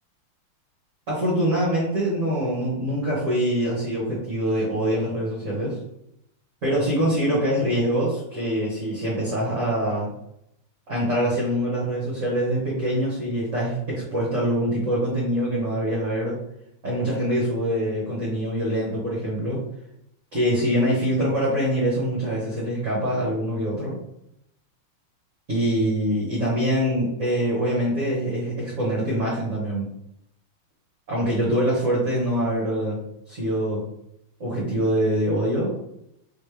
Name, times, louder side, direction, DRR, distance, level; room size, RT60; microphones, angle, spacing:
voice 1, 1.1-5.8 6.6-10.1 10.9-16.4 16.8-19.6 20.3-24.0 25.5-29.8 31.1-33.0 33.3-33.8 34.4-35.8, equal, 40° right, -7 dB, 1.5 m, -24 dB
4.7 x 3.3 x 3.3 m, 0.78 s
omnidirectional pair, 2.4 m